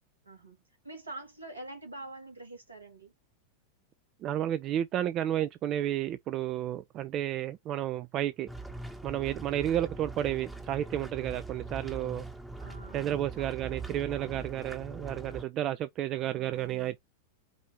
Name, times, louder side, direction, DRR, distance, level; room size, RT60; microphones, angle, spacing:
voice 1, 0.2-0.6 0.8-3.1 12.6-13.1 13.4-14.3 16.1-16.8, right 2 dB, 80° right, 2.0 m, -46 dB
voice 2, 4.2-8.5 9.0-12.2 12.9-17.0, right 12 dB, 35° right, 0.4 m, -32 dB
sound 1, 8.5-15.4, right 3 dB, 5° right, 0.9 m, -42 dB
4.9 x 2.8 x 3.7 m
figure-of-eight pair, 90°, 0 cm